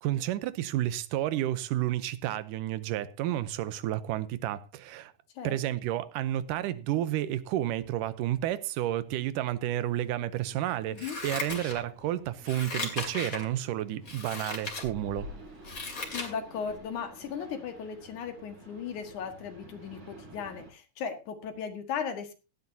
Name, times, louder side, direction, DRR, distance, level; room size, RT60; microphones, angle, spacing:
voice 1, 0.0-5.1 5.4-15.3, right 13 dB, 85° right, 2.4 m, -31 dB
sound 1, 7.8-20.7, right 1 dB, 70° right, 6.0 m, -51 dB
Scissors, 11.0-12.1 12.4-13.5 14.0-14.9 15.3-16.3 16.7-16.8, left 3 dB, 30° left, 2.6 m, -37 dB
voice 2, 16.1-22.3, left 7 dB, 70° left, 3.1 m, -37 dB
17.0 x 12.5 x 2.8 m
omnidirectional pair, 3.7 m